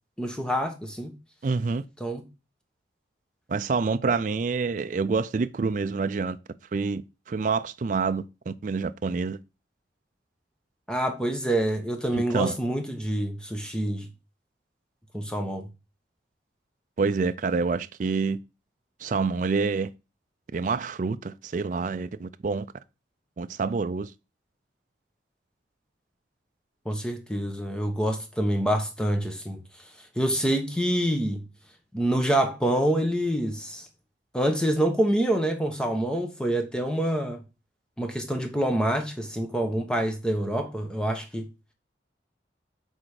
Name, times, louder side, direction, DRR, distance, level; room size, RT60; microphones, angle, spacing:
voice 1, 0.2-1.1 2.0-2.2 4.1-4.2 10.9-14.1 15.1-15.7 26.8-29.6 30.2-31.4 31.9-33.9 34.3-37.4 38.0-41.5, right 1 dB, 5° left, 1.1 m, -26 dB
voice 2, 1.4-1.8 3.5-6.4 6.7-7.0 7.3-9.4 12.1-12.6 17.0-18.4 19.0-19.9 20.5-22.7 23.4-24.1, right 4 dB, 45° right, 0.4 m, -27 dB
6.3 x 4.3 x 4.8 m
head